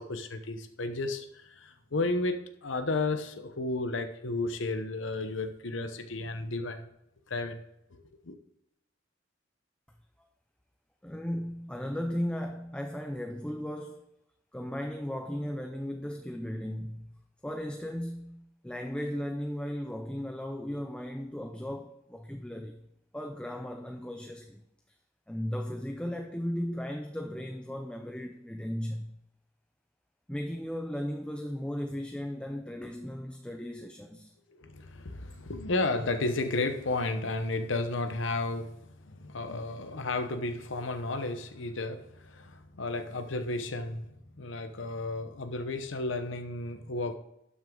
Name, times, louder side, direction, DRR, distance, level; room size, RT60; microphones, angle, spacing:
voice 1, 0.0-6.9 7.3-7.6 7.9-8.4 34.6-44.1 44.4-47.2, left 2 dB, 70° left, 0.9 m, -33 dB
voice 2, 11.0-14.1 14.5-17.1 17.4-22.8 23.1-24.6 25.3-29.2 30.3-34.3, equal, 5° left, 0.6 m, -36 dB
12.0 x 6.3 x 3.8 m
head